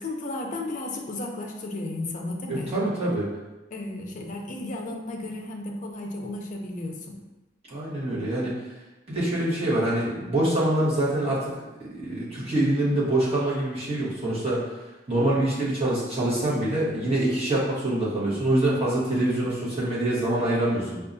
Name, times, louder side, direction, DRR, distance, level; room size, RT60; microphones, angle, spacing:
voice 1, 0.0-2.9 3.7-7.2, left 2 dB, 45° left, 1 dB, 0.5 m, -34 dB
voice 2, 2.5-3.3 7.7-8.5 9.1-11.6 11.9-14.6 15.1-21.0, right 1 dB, 35° right, -8 dB, 1.2 m, -25 dB
4.5 x 2.3 x 2.6 m, 1.1 s
head